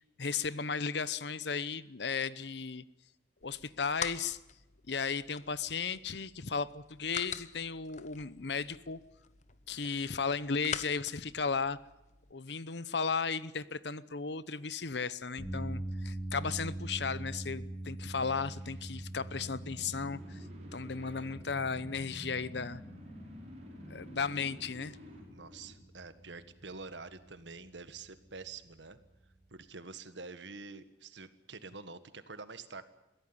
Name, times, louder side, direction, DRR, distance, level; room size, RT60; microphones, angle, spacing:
voice 1, 0.2-2.8 3.4-4.4 4.9-9.0 9.7-11.8 12.3-20.4 20.7-22.8 23.9-25.0, left 5 dB, 70° left, 17 dB, 0.9 m, -35 dB
sound 1, 3.4-12.3, left 6 dB, 40° left, 1.0 m, -46 dB
sound 2, 15.4-29.6, right 1 dB, 5° left, 5.3 m, -44 dB
sound 3, 18.1-26.2, left 1 dB, 35° right, 5.5 m, -50 dB
voice 2, 25.3-29.0 29.5-32.8, right 4 dB, 80° right, 12 dB, 1.6 m, -47 dB
22.5 x 16.0 x 9.7 m, 0.95 s
head